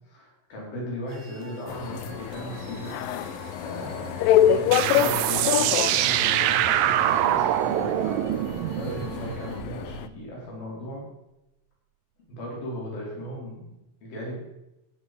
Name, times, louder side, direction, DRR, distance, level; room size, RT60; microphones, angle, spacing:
voice 1, 0.2-3.0 3.6-8.2 8.7-11.1 12.3-13.7 14.0-14.5, equal, 60° left, -4 dB, 6.1 m, -36 dB
sound 1, 1.1-9.6, right 8 dB, 65° right, 2.9 m, -46 dB
sound 2, 1.7-10.1, left 10 dB, 85° left, 2.0 m, -27 dB
sound 3, 4.7-10.0, right 13 dB, 85° right, 2.1 m, -24 dB
14.5 x 9.8 x 5.3 m, 0.93 s
omnidirectional pair, 4.7 m